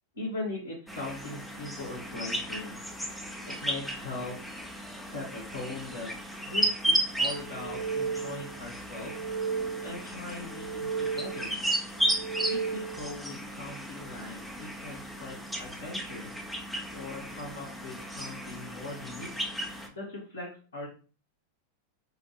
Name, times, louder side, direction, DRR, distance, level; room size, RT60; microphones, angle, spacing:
voice 1, 0.1-2.8 3.5-4.6 5.1-6.1 6.4-9.2 9.8-11.6 12.5-16.3 16.9-19.4 19.9-20.9, left 2 dB, 75° left, -9 dB, 1.5 m, -40 dB
sound 1, 0.9-19.9, right 1 dB, ahead, 0.6 m, -34 dB
sound 2, 7.4-8.6 8.9-10.1 10.4-11.6 12.0-13.1, right 6 dB, 75° right, 0.9 m, -34 dB
3.8 x 2.5 x 3.1 m, 0.37 s
figure-of-eight pair, 90°, 0 cm